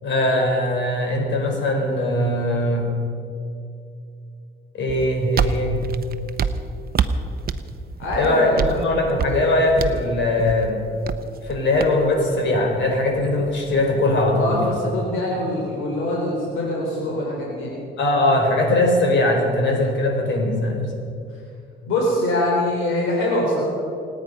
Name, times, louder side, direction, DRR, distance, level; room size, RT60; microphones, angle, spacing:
voice 1, 0.0-2.9 4.7-5.8 8.2-10.8 11.4-14.8 18.0-20.8, left 1 dB, 65° left, 1 dB, 4.5 m, -20 dB
sound 1, 4.9-14.8, right 6 dB, 50° right, 0.8 m, -29 dB
voice 2, 8.0-8.8 14.3-17.7 21.9-23.6, left 1 dB, 85° left, -2 dB, 3.8 m, -24 dB
28.0 x 9.5 x 5.4 m, 2.5 s
cardioid pair, 90°, 20 cm